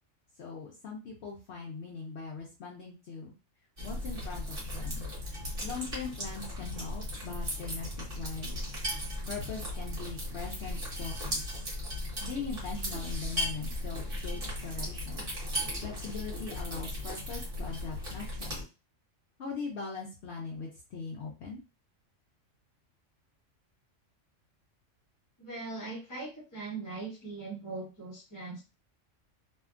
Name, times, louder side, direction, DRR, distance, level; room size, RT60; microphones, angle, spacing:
voice 1, 0.4-3.3 3.8-5.1 5.6-8.6 9.3-11.6 12.2-15.3 15.8-18.7 19.4-21.6, left 4 dB, 65° left, -1 dB, 0.9 m, -41 dB
sound 1, 3.8-18.6, left 1 dB, 50° right, 1.3 m, -36 dB
voice 2, 25.4-28.6, right 3 dB, 15° left, -4 dB, 1.0 m, -40 dB
2.7 x 2.3 x 2.4 m, 0.30 s
omnidirectional pair, 1.3 m